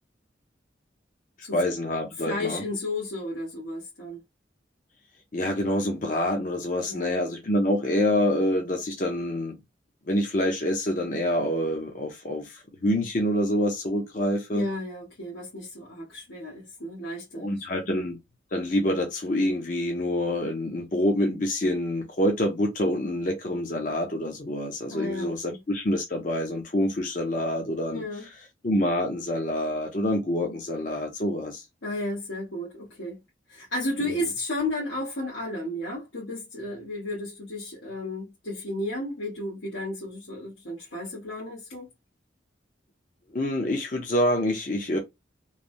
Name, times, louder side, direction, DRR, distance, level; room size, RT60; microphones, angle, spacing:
voice 1, 1.5-2.6 5.3-9.6 10.1-14.7 17.3-18.2 18.5-28.0 28.6-31.6 34.0-34.1 43.3-45.0, left 1 dB, 45° left, 0.6 m, -26 dB
voice 2, 2.2-4.2 6.9-7.2 14.5-17.8 24.9-25.6 27.9-28.3 31.8-33.2 33.5-41.9, left 1 dB, 90° left, 1.2 m, -33 dB
3.1 x 2.2 x 2.5 m
head